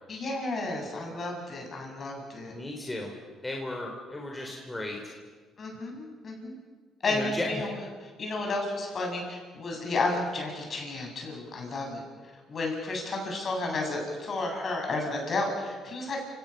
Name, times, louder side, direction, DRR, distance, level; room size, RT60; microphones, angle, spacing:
voice 1, 0.1-2.5 5.6-6.6 7.0-7.8 8.2-12.0 12.5-16.2, left 2 dB, 45° left, 1 dB, 7.9 m, -32 dB
voice 2, 2.5-3.1 3.4-5.0 7.1-7.7, left 1 dB, 15° left, 0 dB, 3.8 m, -35 dB
28.5 x 18.0 x 6.9 m, 1.5 s
cardioid pair, 85°, 0 cm